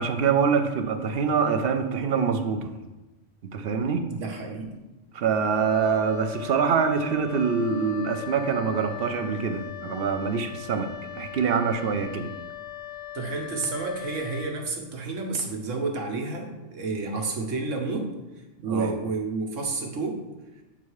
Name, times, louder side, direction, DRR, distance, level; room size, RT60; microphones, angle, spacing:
voice 1, 0.0-2.7 3.5-4.0 5.1-10.9 11.2-12.3 18.7-18.9, right 6 dB, 60° right, 7 dB, 0.7 m, -25 dB
voice 2, 4.1-4.8 13.1-18.1 18.6-20.2, right 3 dB, 75° right, 2 dB, 1.4 m, -30 dB
Wind instrument woodwind instrument, 5.5-14.6, left 11 dB, 15° left, 0.8 m, -39 dB
7.2 x 4.0 x 4.7 m, 1.1 s
omnidirectional pair, 1.3 m